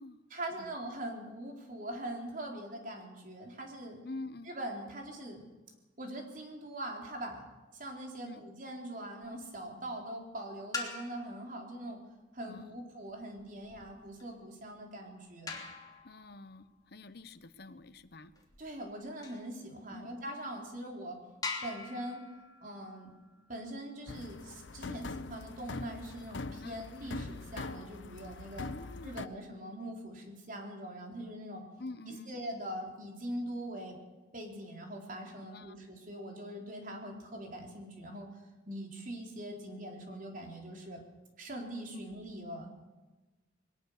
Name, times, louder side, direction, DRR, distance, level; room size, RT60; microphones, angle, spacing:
voice 1, 0.3-4.0 4.5-5.5 6.0-7.5 7.7-12.0 12.3-15.6 18.6-21.2 21.6-22.2 22.6-23.1 23.5-28.7 29.0-31.6 32.0-34.0 34.3-38.3 38.7-41.0 41.4-42.7, right 1 dB, 45° right, 1 dB, 4.0 m, -42 dB
voice 2, 4.0-4.5 8.2-8.4 12.4-12.8 16.0-18.3 19.9-20.1 26.6-26.8 28.7-29.2 31.8-32.3 35.4-35.8 41.9-42.0, left 2 dB, 60° left, 12 dB, 1.0 m, -47 dB
sound 1, 9.2-9.7 10.6-11.4 13.1-19.5 20.2-20.3 20.8-20.9 21.4-24.1 26.2-27.2, left 3 dB, 20° left, 3.0 m, -45 dB
sound 2, 24.1-29.3, left 3 dB, 90° left, 0.9 m, -43 dB
21.0 x 19.0 x 6.7 m, 1.2 s
head